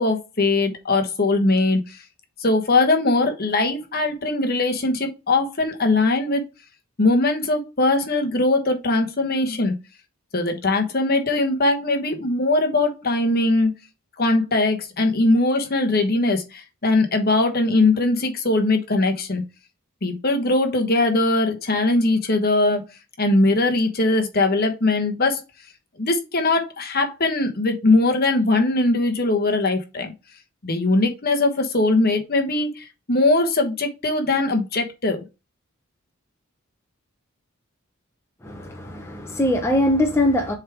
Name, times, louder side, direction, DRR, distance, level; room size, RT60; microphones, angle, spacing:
voice 1, 0.0-2.0 2.4-6.4 7.0-9.7 10.3-13.7 14.2-19.4 20.0-22.8 23.2-25.4 26.0-30.1 30.6-35.2, left 2 dB, 45° left, 1.1 m, -20 dB
voice 2, 38.4-40.5, left 1 dB, 10° left, 0.8 m, -21 dB
7.2 x 3.5 x 4.5 m
head